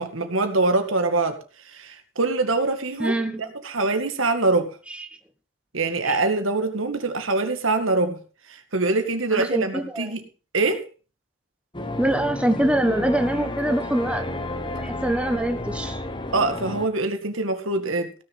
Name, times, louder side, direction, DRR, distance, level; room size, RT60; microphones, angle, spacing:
voice 1, 0.0-1.4 1.7-3.2 3.6-4.8 5.7-8.2 8.5-10.2 10.5-10.8 16.3-18.2, right 3 dB, 85° right, 2.0 m, -24 dB
voice 2, 3.0-3.4 6.1-6.2 9.3-10.1 12.0-14.2 14.8-16.0, right 1 dB, 5° right, 1.1 m, -24 dB
sound 1, 11.7-16.9, left 1 dB, 25° left, 1.0 m, -31 dB
17.0 x 6.7 x 5.5 m
head